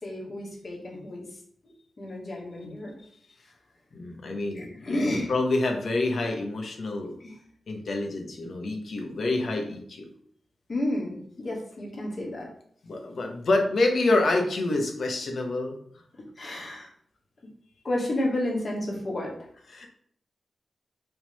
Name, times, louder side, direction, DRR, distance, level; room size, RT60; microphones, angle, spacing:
voice 1, 0.0-1.2 2.0-2.9 4.5-5.3 7.2-7.3 10.7-12.5 16.4-16.9 17.8-19.5, left 1 dB, 40° left, -3 dB, 2.4 m, -31 dB
voice 2, 3.9-7.1 7.7-10.1 12.8-15.8 19.7-19.9, left 2 dB, 60° left, 3 dB, 1.2 m, -27 dB
5.9 x 3.7 x 5.3 m, 0.64 s
wide cardioid pair, 130°, 0 cm